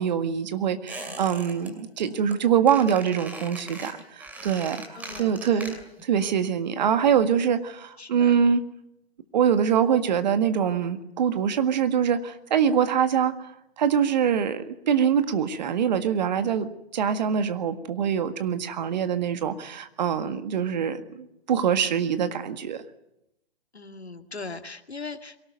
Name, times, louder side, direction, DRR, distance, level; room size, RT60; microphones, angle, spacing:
voice 1, 0.0-5.7 6.1-8.6 9.3-13.5 13.8-22.8, right 8 dB, 45° right, 10 dB, 1.9 m, -24 dB
Squeak, 0.9-1.7 2.0-2.3 2.7-6.1 6.3-6.4, right 2 dB, 5° right, 2.5 m, -40 dB
voice 2, 4.9-5.8 8.0-8.4 23.7-25.4, left 4 dB, 90° left, 8 dB, 2.2 m, -39 dB
23.5 x 18.5 x 9.4 m, 0.81 s
figure-of-eight pair, 140°, 31 cm